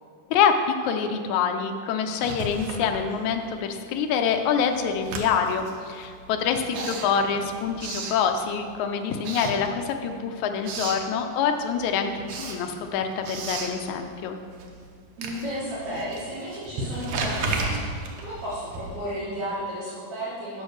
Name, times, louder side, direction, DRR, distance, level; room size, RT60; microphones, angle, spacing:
voice 1, 0.8-12.1 12.4-14.4, left 7 dB, 75° left, 5 dB, 1.8 m, -26 dB
Writing, 2.1-3.7 4.0-8.8 9.2-10.2 10.4-11.1 11.5-19.2, right 3 dB, 75° right, 1.3 m, -34 dB
voice 2, 6.7-7.4 15.2-20.6, equal, 60° right, -10 dB, 3.1 m, -34 dB
6.9 x 6.3 x 6.3 m, 2.1 s
omnidirectional pair, 3.8 m